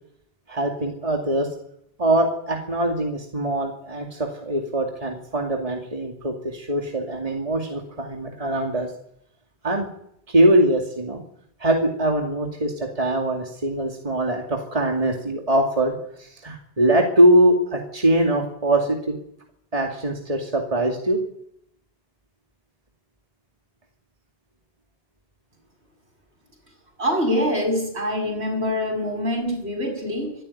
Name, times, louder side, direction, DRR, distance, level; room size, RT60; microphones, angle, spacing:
voice 1, 0.5-1.5 2.0-8.9 9.6-9.9 10.3-11.2 11.6-19.2 19.7-21.2, right 1 dB, 35° right, 1 dB, 2.6 m, -22 dB
voice 2, 27.0-30.4, equal, 80° right, 2 dB, 7.4 m, -24 dB
24.5 x 13.0 x 10.0 m, 0.75 s
omnidirectional pair, 1.1 m